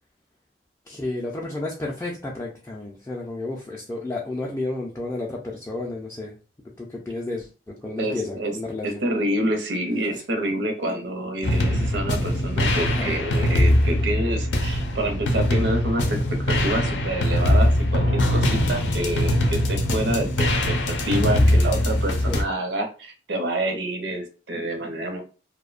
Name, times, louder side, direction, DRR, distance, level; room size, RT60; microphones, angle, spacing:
voice 1, 0.9-6.3 6.8-9.0 12.8-13.1 15.5-15.6 22.3-22.4, left 2 dB, 15° left, -3 dB, 0.3 m, -32 dB
voice 2, 8.0-8.6 8.8-16.2 16.4-20.8 21.0-25.2, right 1 dB, 80° right, 4 dB, 0.6 m, -27 dB
sound 1, 11.4-22.4, left 1 dB, 75° left, 0.5 m, -22 dB
2.6 x 2.1 x 2.4 m, 0.34 s
head